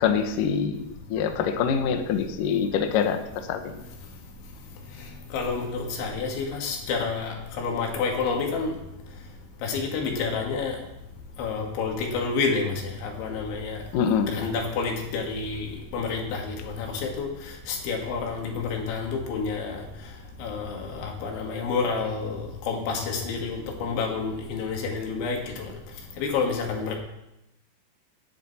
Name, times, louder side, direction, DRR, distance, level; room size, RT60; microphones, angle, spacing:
voice 1, 0.0-3.2 3.5-3.7 13.9-14.4, left 7 dB, 90° left, 6 dB, 1.9 m, -25 dB
voice 2, 5.3-8.7 9.6-10.8 11.4-12.7 13.0-13.8 14.3-17.3 17.7-19.8 20.4-25.6 26.2-27.0, left 4 dB, 70° left, 1 dB, 4.4 m, -29 dB
18.5 x 10.5 x 4.3 m, 0.89 s
omnidirectional pair, 5.7 m